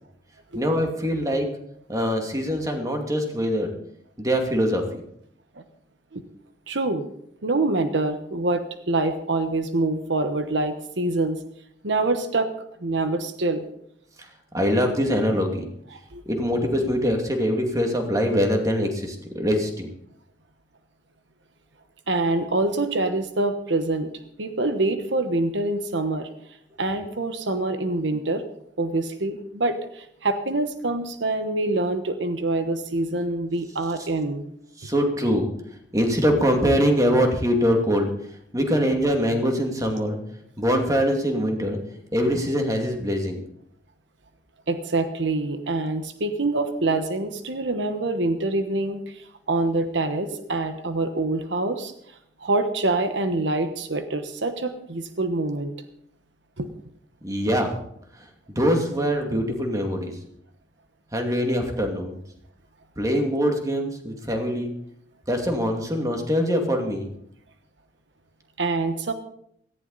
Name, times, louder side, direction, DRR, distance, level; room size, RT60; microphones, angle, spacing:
voice 1, 0.5-1.5 1.9-3.7 4.2-4.8 14.2-14.3 14.5-15.6 16.3-19.9 34.8-35.5 35.9-38.1 38.5-40.2 40.6-41.8 42.1-43.4 57.2-57.8 58.5-60.1 61.1-62.2 63.0-64.7 65.3-67.1, equal, 20° right, 3 dB, 2.3 m, -23 dB
voice 2, 6.7-7.0 7.4-11.4 11.8-12.5 12.8-13.7 15.9-16.2 22.1-24.1 24.4-26.3 26.8-28.4 28.8-34.4 44.7-51.9 52.4-55.7 56.6-56.7 68.6-69.1, right 2 dB, 80° right, 8 dB, 1.2 m, -25 dB
17.5 x 14.5 x 4.1 m, 0.71 s
head